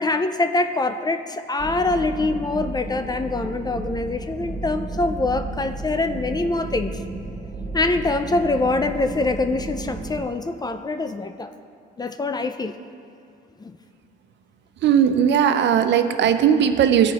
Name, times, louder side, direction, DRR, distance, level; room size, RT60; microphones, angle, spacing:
voice 1, 0.0-7.0 7.7-11.5 12.0-12.8 13.6-13.7, left 2 dB, 20° left, 9 dB, 0.3 m, -24 dB
sound 1, 1.6-10.2, right 2 dB, 30° right, 1.4 m, -33 dB
voice 2, 14.8-17.1, right 8 dB, 65° right, 9 dB, 0.5 m, -18 dB
12.5 x 4.9 x 2.9 m, 2.5 s
cardioid pair, 90°, 20 cm